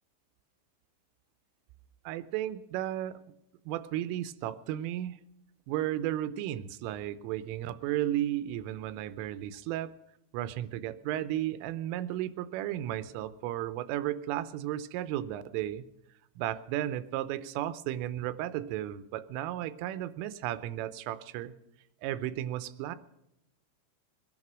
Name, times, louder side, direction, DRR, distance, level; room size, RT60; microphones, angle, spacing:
voice 1, 2.1-3.2 3.7-5.2 5.7-9.9 10.3-15.8 16.4-21.5 22.0-23.0, right 13 dB, 90° right, 13 dB, 3.3 m, -34 dB
21.5 x 11.0 x 6.0 m, 0.83 s
omnidirectional pair, 5.6 m